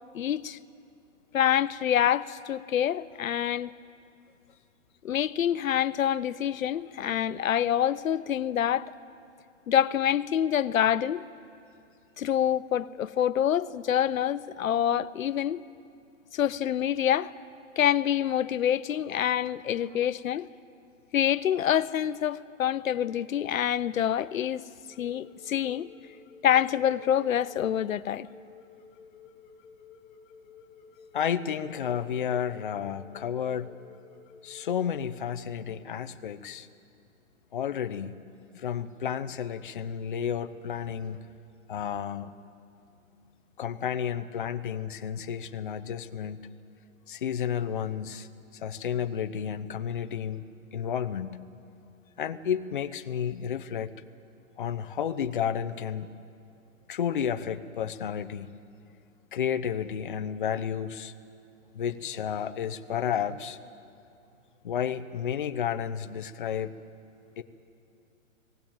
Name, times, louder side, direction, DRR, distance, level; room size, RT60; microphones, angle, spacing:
voice 1, 0.1-0.6 1.3-3.7 5.0-8.9 9.7-11.2 12.2-15.6 16.3-17.3 17.8-20.5 21.1-24.6 25.0-25.9 26.4-28.3, left 10 dB, 85° left, 0.7 m, -26 dB
sound 1, 24.8-35.1, left 6 dB, 15° left, 1.3 m, -53 dB
voice 2, 31.1-33.7 34.4-36.7 37.5-38.1 38.5-41.3 41.7-42.3 43.6-46.4 47.1-50.4 50.7-51.4 52.2-53.9 54.6-56.1 56.9-58.5 59.3-61.1 61.7-63.6 64.6-66.7 67.4-67.5, left 8 dB, 40° left, 0.7 m, -31 dB
19.0 x 17.5 x 8.8 m
hypercardioid pair, 170°, 40 cm